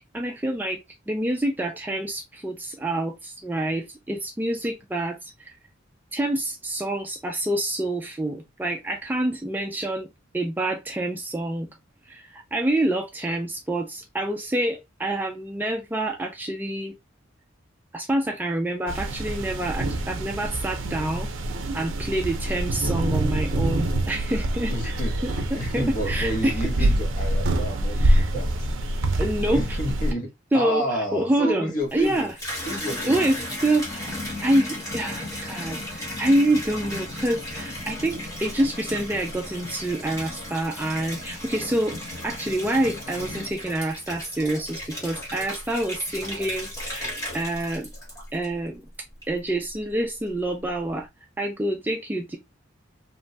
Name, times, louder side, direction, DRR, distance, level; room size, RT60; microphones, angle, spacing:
voice 1, 0.1-0.8 1.1-5.5 6.1-10.1 10.3-11.7 12.1-16.9 17.9-21.3 21.7-25.0 25.2-26.9 28.0-28.3 29.2-29.8 30.5-32.3 33.0-42.0 42.2-47.9 48.3-48.9 49.3-51.1 51.4-52.4, right 1 dB, 10° right, 0.3 m, -27 dB
sound 1, 18.9-30.1, right 1 dB, 80° right, 0.5 m, -25 dB
voice 2, 24.7-28.7 29.5-32.3 32.6-33.3, equal, 45° left, 0.9 m, -30 dB
Water tap faucet / Bathtub (filling or washing), 31.8-48.8 49.2-49.8, left 1 dB, 20° left, 1.1 m, -35 dB
2.9 x 2.2 x 2.6 m
head